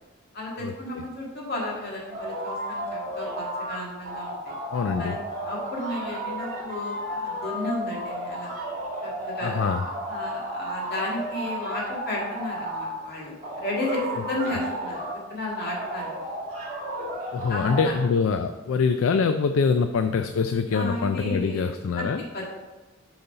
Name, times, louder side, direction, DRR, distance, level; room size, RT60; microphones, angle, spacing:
voice 1, 0.3-4.5 5.0-5.2 5.4-8.5 9.0-9.6 10.1-16.1 17.5-17.9 20.7-22.4, left 2 dB, 50° left, -3 dB, 1.9 m, -33 dB
sound 1, 2.1-3.8 4.0-12.9 13.4-15.2 15.6-17.9, right 1 dB, 40° right, 1.6 m, -33 dB
voice 2, 4.7-5.2 9.4-9.8 17.3-22.2, left 5 dB, 70° left, 9 dB, 0.3 m, -24 dB
6.8 x 4.0 x 5.5 m, 1.2 s
head